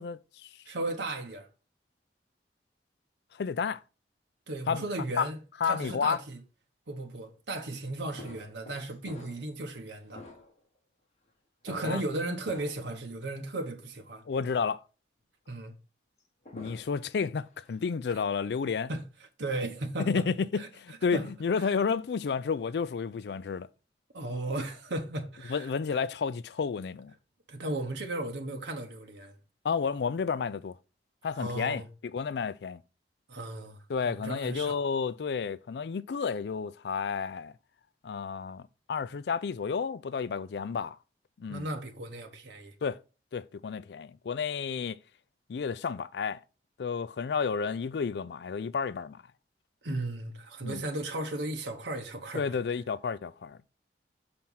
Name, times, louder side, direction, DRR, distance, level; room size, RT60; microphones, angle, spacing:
voice 1, 0.0-0.5 3.3-3.8 4.7-4.8 5.2-5.3 5.6-6.2 11.7-12.0 14.3-14.8 16.5-18.9 20.0-23.7 25.5-27.1 29.6-30.8 31.2-32.8 33.9-37.5 38.0-41.0 41.4-41.7 42.8-43.0 43.3-45.0 45.5-46.4 46.8-49.2 50.6-50.8 52.3-53.7, left 5 dB, 70° left, 0.4 m, -31 dB
voice 2, 0.7-1.5 4.5-5.4 5.6-6.4 6.9-10.2 11.6-14.2 15.5-15.7 18.9-19.0 19.4-20.2 20.6-20.7 21.1-21.3 21.6-21.7 24.1-26.0 27.5-29.3 31.4-31.9 33.3-34.8 41.5-42.7 49.8-52.6, right 2 dB, 85° right, 1.1 m, -35 dB
sound 1, 8.2-9.7 10.1-10.8 11.6-11.8 12.4-12.9 13.4-13.5 16.2-17.1 17.5-17.8, left 2 dB, 40° left, 1.6 m, -48 dB
6.0 x 4.4 x 5.5 m
head